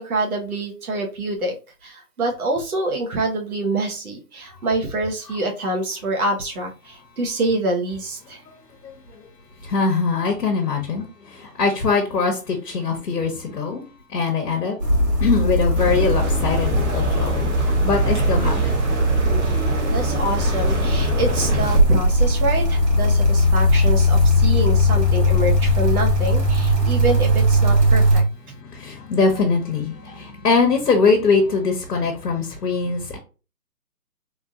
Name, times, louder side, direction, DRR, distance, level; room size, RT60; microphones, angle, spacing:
voice 1, 0.0-1.6 1.8-8.4 19.8-28.2, right 2 dB, 60° right, 1 dB, 1.3 m, -26 dB
voice 2, 8.8-9.2 9.6-14.8 15.2-18.7 28.6-33.2, left 4 dB, 70° left, 2 dB, 1.2 m, -22 dB
sound 1, 14.8-28.2, equal, 80° right, 1.7 m, -19 dB
sound 2, 15.8-21.8, right 2 dB, 45° right, 1.2 m, -27 dB
3.6 x 2.7 x 2.4 m, 0.33 s
hypercardioid pair, 170°, 48 cm